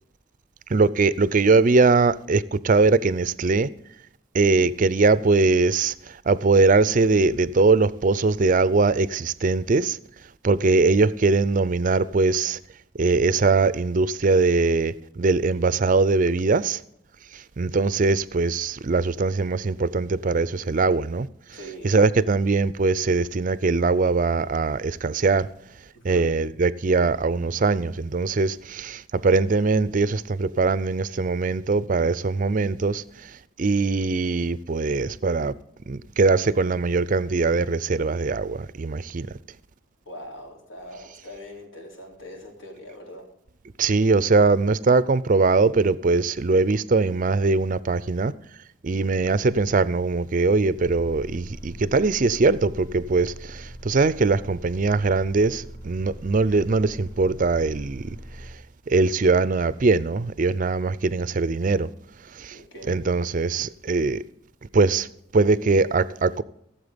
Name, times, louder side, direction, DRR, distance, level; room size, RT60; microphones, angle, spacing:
voice 1, 0.7-3.7 4.3-10.0 10.4-12.6 13.0-16.8 17.3-21.3 21.8-25.5 26.0-35.5 35.9-39.3 43.8-48.3 48.8-58.2 58.9-61.9 62.3-62.6 62.9-64.2 64.7-65.1 65.3-66.4, right 3 dB, 45° right, 0.5 m, -21 dB
voice 2, 21.5-21.9 25.9-26.3 40.1-43.3 62.5-63.0, equal, 75° left, 3.9 m, -41 dB
sound 1, 50.7-58.5, equal, 35° left, 2.9 m, -42 dB
16.0 x 7.7 x 5.1 m
head